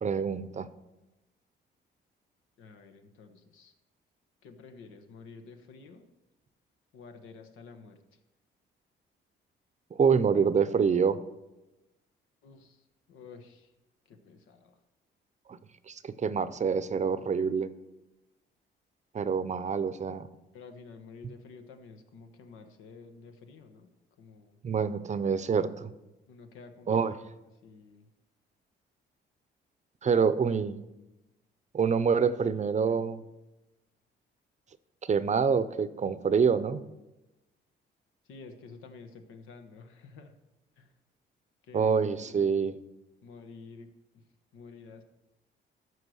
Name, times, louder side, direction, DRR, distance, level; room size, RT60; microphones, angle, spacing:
voice 1, 0.0-0.7 10.0-11.2 15.5-15.6 15.9-17.7 19.1-20.3 24.6-25.9 26.9-27.1 30.0-30.8 31.7-33.2 35.1-36.8 41.7-42.8, right 6 dB, 35° right, 14 dB, 0.6 m, -26 dB
voice 2, 2.6-3.7 4.4-6.1 6.9-8.0 12.4-12.8 13.1-13.7 14.1-14.7 20.5-23.9 24.2-24.6 26.3-27.2 27.6-28.1 32.9-33.0 38.3-40.3 40.8-40.9 41.7-42.6 43.2-43.9 44.5-45.0, left 4 dB, 90° left, 7 dB, 1.2 m, -50 dB
14.0 x 4.8 x 6.3 m, 1.0 s
cardioid pair, 90°, 20 cm